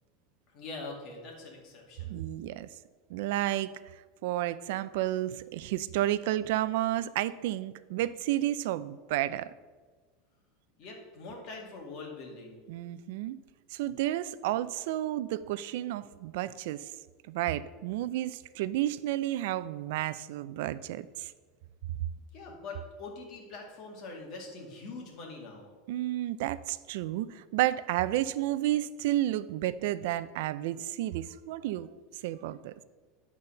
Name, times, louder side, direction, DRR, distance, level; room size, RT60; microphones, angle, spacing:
voice 1, 0.5-2.2 10.8-12.6 22.3-25.7, left 3 dB, 45° left, 0 dB, 2.2 m, -43 dB
voice 2, 2.1-2.7 3.1-3.7 4.2-9.5 12.7-13.4 13.7-16.9 17.3-21.3 25.9-31.9 32.2-32.7, right 14 dB, 70° right, 16 dB, 0.4 m, -31 dB
9.0 x 4.1 x 6.5 m, 1.4 s
supercardioid pair, 150°, 0 cm